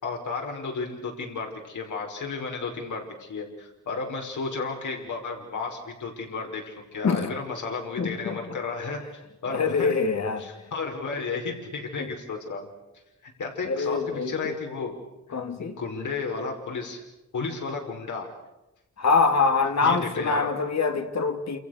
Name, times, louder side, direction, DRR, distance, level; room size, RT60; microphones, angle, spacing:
voice 1, 0.0-9.0 9.4-9.9 10.4-12.7 13.2-15.0 15.3-17.0 17.3-18.3 19.8-20.5, left 4 dB, 80° left, 5.5 m, -33 dB
voice 2, 8.0-8.6 9.5-10.5 12.0-12.1 13.6-14.6 15.3-15.8 19.0-21.6, left 4 dB, 65° left, 3.1 m, -25 dB
29.5 x 28.0 x 6.7 m
wide cardioid pair, 145°, 30 cm